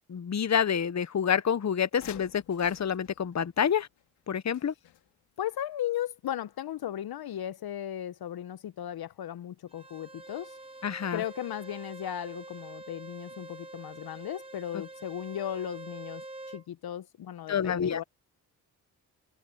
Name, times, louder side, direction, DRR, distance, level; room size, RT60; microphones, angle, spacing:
voice 1, 0.1-3.9 4.3-4.7 10.8-11.2 17.5-18.0, left 8 dB, 45° left, 1.0 m, -28 dB
sound 1, 2.0-5.4 7.3-7.4 7.7-7.8, left 13 dB, 85° left, 3.3 m, -51 dB
voice 2, 5.4-10.6 11.1-18.0, left 11 dB, 65° left, 0.9 m, -36 dB
Bowed string instrument, 9.7-16.6, right 2 dB, 15° right, 4.3 m, -46 dB
supercardioid pair, 40°, 40 cm